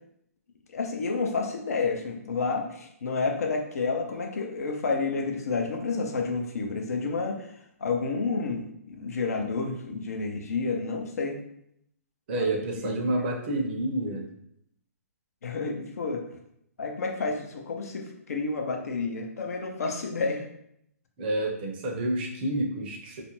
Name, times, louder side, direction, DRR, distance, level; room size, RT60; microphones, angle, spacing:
voice 1, 0.7-7.5 7.8-11.4 12.3-12.5 12.9-13.1 15.4-16.2 16.8-20.5, left 4 dB, 70° left, 3 dB, 0.5 m, -30 dB
voice 2, 12.3-14.3 21.2-23.2, right 1 dB, 40° right, 1 dB, 0.5 m, -29 dB
2.4 x 2.1 x 3.0 m, 0.74 s
hypercardioid pair, 135°, 9 cm